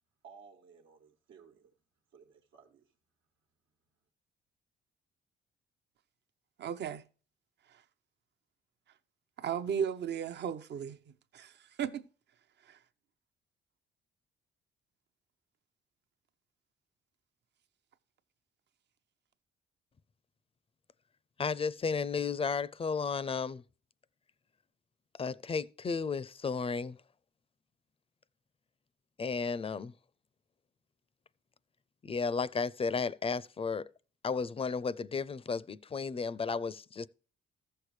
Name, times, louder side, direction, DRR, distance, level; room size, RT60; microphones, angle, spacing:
voice 1, 0.2-1.7 2.1-2.9, right 6 dB, 80° right, 1.3 m, -57 dB
voice 2, 6.6-7.0 9.4-11.5 11.8-12.1, right 8 dB, 60° right, 0.8 m, -35 dB
voice 3, 21.4-23.6 25.2-27.0 29.2-29.9 32.0-33.9 34.2-37.1, left 5 dB, 30° left, 0.5 m, -33 dB
14.5 x 6.6 x 3.2 m
cardioid pair, 90°, 20 cm